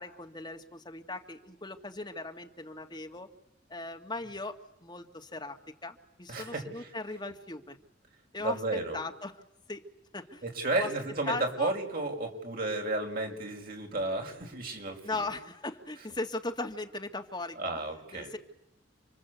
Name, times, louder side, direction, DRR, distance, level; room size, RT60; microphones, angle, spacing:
voice 1, 0.0-3.3 3.7-7.8 8.3-9.4 9.7-9.9 10.1-10.4 10.8-10.9 11.3-11.7 15.0-17.6 18.1-18.4, left 2 dB, 25° left, 4 dB, 2.0 m, -38 dB
voice 2, 6.3-6.9 8.4-9.0 10.4-15.3 17.6-18.3, right 2 dB, 50° right, 2 dB, 5.5 m, -33 dB
30.0 x 23.5 x 8.3 m, 0.80 s
head